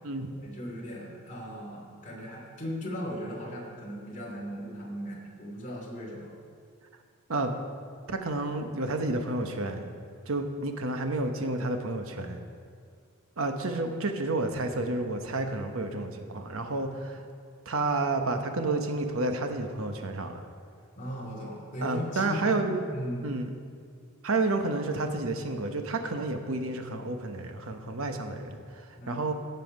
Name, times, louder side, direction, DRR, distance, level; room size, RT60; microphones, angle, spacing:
voice 1, 0.4-6.3 21.0-22.6 22.9-23.3 29.0-29.3, equal, 35° left, -3 dB, 2.5 m, -37 dB
voice 2, 8.1-9.9 10.3-12.5 13.4-17.2 17.7-20.4 21.8-22.8 23.2-23.5 24.2-29.3, right 2 dB, 65° right, 6 dB, 0.9 m, -30 dB
16.0 x 5.6 x 5.3 m, 2.2 s
head